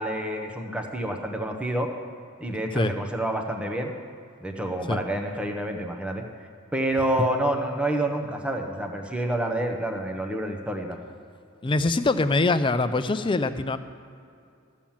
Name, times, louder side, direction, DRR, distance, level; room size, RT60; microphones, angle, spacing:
voice 1, 0.0-1.9 2.4-3.9 4.4-6.2 6.7-11.0, right 1 dB, 5° right, 3 dB, 0.9 m, -28 dB
voice 2, 11.6-13.8, left 3 dB, 25° left, 10 dB, 0.4 m, -23 dB
13.5 x 7.3 x 7.2 m, 2.4 s
head